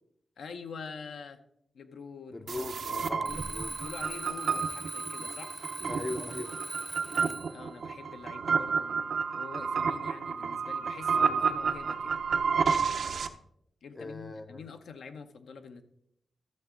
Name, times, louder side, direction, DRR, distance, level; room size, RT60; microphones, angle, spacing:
voice 1, 0.4-1.4 1.7-3.4 3.8-5.6 7.1-12.1 13.8-15.8, left 5 dB, 85° left, 7 dB, 0.8 m, -46 dB
voice 2, 2.3-3.7 5.9-6.7 14.0-14.6, left 2 dB, 30° left, 10 dB, 0.5 m, -39 dB
sound 1, 2.5-13.3, right 5 dB, 70° right, 0.6 m, -31 dB
Alarm, 3.2-7.6, right 2 dB, 20° right, 0.6 m, -41 dB
12.5 x 6.8 x 3.8 m, 0.73 s
cardioid pair, 90°, 0 cm